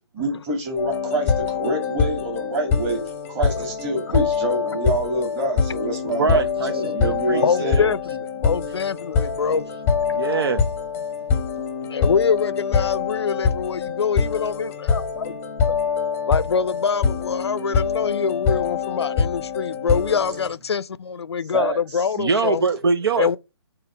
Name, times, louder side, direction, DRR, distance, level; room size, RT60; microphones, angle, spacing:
voice 1, 0.1-3.0 3.3-6.4 6.7-7.8 21.5-21.8, right 1 dB, 20° right, 2.2 m, -26 dB
sound 1, 0.8-20.5, left 5 dB, 10° left, 0.9 m, -24 dB
voice 2, 6.2-6.7 7.0-7.9 10.1-10.7 22.2-23.4, right 4 dB, 60° right, 0.7 m, -23 dB
voice 3, 7.4-9.6 11.9-15.3 15.7-15.8 16.3-22.6 23.2-23.4, left 6 dB, 70° left, 0.5 m, -24 dB
7.7 x 3.0 x 5.0 m
hypercardioid pair, 155°, 14 cm